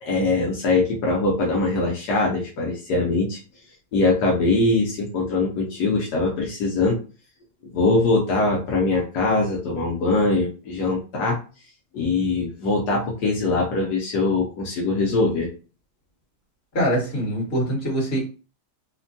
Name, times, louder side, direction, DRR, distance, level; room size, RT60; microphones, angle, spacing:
voice 1, 0.0-3.4 3.9-7.0 7.7-11.4 11.9-15.5, left 3 dB, 75° left, -2 dB, 1.2 m, -22 dB
voice 2, 16.7-18.2, equal, 40° left, -3 dB, 1.5 m, -23 dB
3.3 x 2.2 x 2.5 m, 0.34 s
omnidirectional pair, 1.8 m